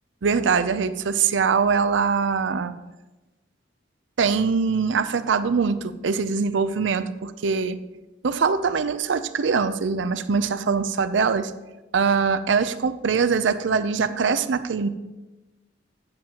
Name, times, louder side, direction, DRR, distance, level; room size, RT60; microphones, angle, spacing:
voice 1, 0.2-2.7 4.2-7.8 8.2-11.5 11.9-14.9, right 5 dB, 80° right, 12 dB, 0.5 m, -23 dB
13.0 x 8.8 x 2.9 m, 1.1 s
head